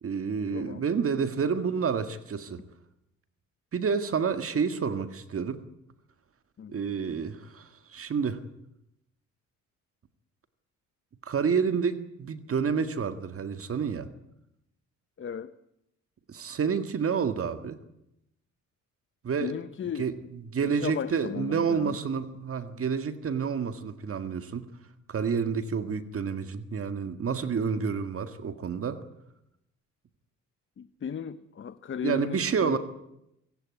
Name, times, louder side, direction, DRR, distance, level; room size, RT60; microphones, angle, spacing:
voice 1, 0.0-2.6 3.7-5.6 6.7-8.4 11.2-14.1 16.3-17.8 19.2-19.5 20.0-24.7 25.1-29.0 32.0-32.8, right 6 dB, 50° right, 1.9 m, -29 dB
voice 2, 0.5-0.8 6.6-6.8 15.2-15.5 19.4-20.1 20.6-22.0 30.8-32.8, left 7 dB, 40° left, 0.9 m, -35 dB
25.5 x 16.5 x 9.6 m
cardioid pair, 90°, 30 cm